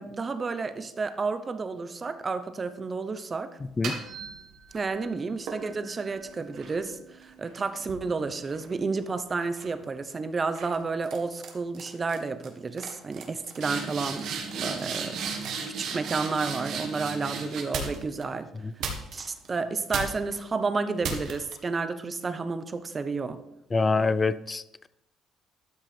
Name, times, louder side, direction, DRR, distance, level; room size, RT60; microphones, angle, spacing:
voice 1, 0.0-3.6 4.7-14.3 14.5-15.5 15.8-18.5 19.1-23.4, right 4 dB, 25° right, 0.8 m, -31 dB
sound 1, 3.6-4.9 5.5-9.0 9.4-9.8 10.5-10.8 11.0-11.5 11.7-12.2 12.4-12.5 12.8-18.2 18.8-19.5 19.9-20.4 21.0-21.5, right 5 dB, 65° right, 1.8 m, -36 dB
voice 2, 23.7-24.9, left 4 dB, 20° left, 0.4 m, -25 dB
12.5 x 6.2 x 4.4 m
cardioid pair, 125°, 0 cm